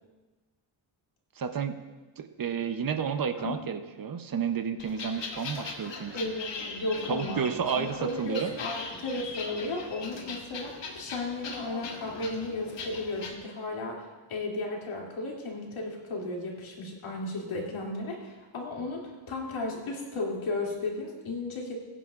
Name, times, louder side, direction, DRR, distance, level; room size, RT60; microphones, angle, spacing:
voice 1, 1.4-1.8 2.2-6.2 7.1-8.5, right 7 dB, 45° right, 8 dB, 0.8 m, -31 dB
sound 1, 4.8-13.3, left 4 dB, 65° left, 1.5 m, -40 dB
voice 2, 6.1-7.4 7.7-21.7, left 2 dB, 85° left, -2 dB, 2.8 m, -34 dB
21.5 x 9.9 x 2.5 m, 1.2 s
wide cardioid pair, 120°, 47 cm